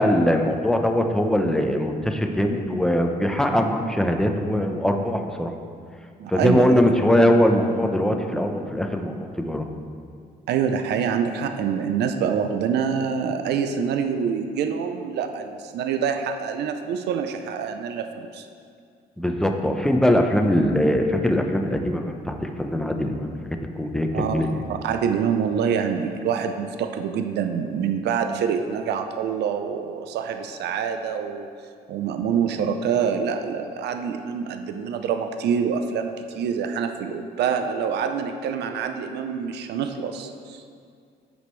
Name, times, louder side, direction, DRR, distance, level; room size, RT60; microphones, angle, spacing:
voice 1, 0.0-5.5 6.3-9.6 19.2-24.6, left 1 dB, 5° left, 4 dB, 0.8 m, -22 dB
voice 2, 6.2-6.8 10.5-18.5 24.1-31.5 31.9-40.6, right 7 dB, 80° right, 7 dB, 0.6 m, -26 dB
15.0 x 5.1 x 3.2 m, 2.3 s
cardioid pair, 85°, 17 cm